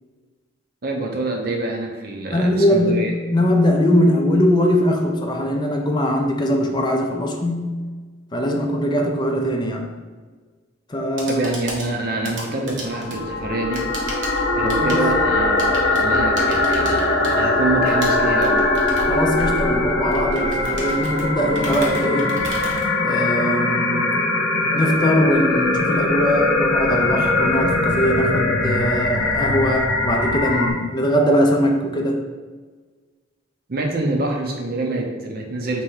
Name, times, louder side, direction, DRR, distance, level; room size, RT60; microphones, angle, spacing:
voice 1, 0.8-3.1 11.3-13.9 14.6-18.6 33.7-35.8, right 2 dB, 50° right, 1 dB, 0.7 m, -26 dB
voice 2, 2.3-7.8 8.3-10.0 10.9-11.4 14.8-15.1 19.1-22.4 23.0-24.2 24.7-32.2, equal, 20° left, 2 dB, 0.4 m, -21 dB
sound 1, 10.9-23.5, right 1 dB, 75° right, 1.0 m, -36 dB
sound 2, 12.9-30.7, left 2 dB, 70° left, 0.7 m, -21 dB
3.4 x 3.0 x 4.7 m, 1.4 s
head